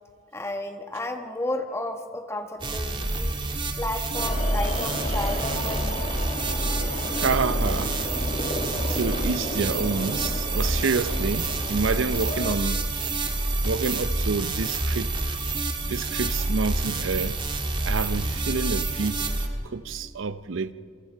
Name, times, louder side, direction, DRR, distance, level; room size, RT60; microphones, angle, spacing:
voice 1, 0.3-3.4 3.8-6.2, left 1 dB, 15° left, 1.2 m, -33 dB
sound 1, 2.6-19.5, right 2 dB, 25° right, 1.6 m, -28 dB
sound 2, 4.1-12.5, left 1 dB, 35° left, 1.5 m, -33 dB
voice 2, 7.2-8.0 8.9-12.9 13.6-15.4 15.8-17.4 17.8-19.3 19.6-20.7, right 4 dB, 75° right, 0.6 m, -28 dB
28.0 x 23.5 x 4.6 m
head